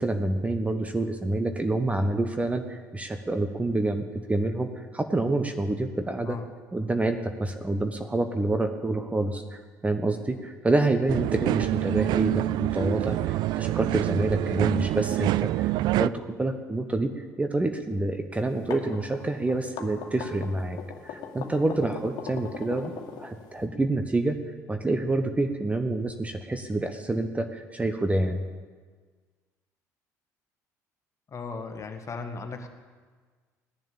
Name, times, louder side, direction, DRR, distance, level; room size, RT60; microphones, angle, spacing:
voice 1, 0.0-6.4 6.7-15.7 16.0-20.8 21.0-22.9 23.2-24.4 24.7-28.4, right 2 dB, 15° right, 7 dB, 1.1 m, -27 dB
sound 1, 11.1-16.1, right 16 dB, 50° right, 0.3 m, -26 dB
sound 2, 18.4-23.7, left 7 dB, 50° left, 2.0 m, -39 dB
voice 2, 31.3-32.7, left 4 dB, 35° left, 6 dB, 1.8 m, -37 dB
17.5 x 10.5 x 7.2 m, 1.5 s
figure-of-eight pair, 55°, 9 cm